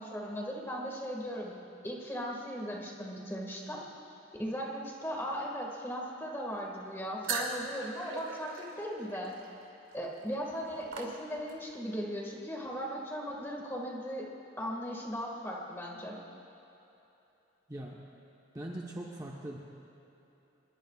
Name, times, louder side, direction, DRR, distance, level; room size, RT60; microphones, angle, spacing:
voice 1, 0.0-1.6 1.8-3.8 4.4-9.4 9.9-14.3 14.6-16.2, equal, 10° left, -1 dB, 1.9 m, -38 dB
sound 1, 7.2-11.7, right 4 dB, 85° right, 2.5 m, -40 dB
voice 2, 18.5-19.6, right 1 dB, 20° right, -3 dB, 1.1 m, -41 dB
26.5 x 21.5 x 2.4 m, 3.0 s
head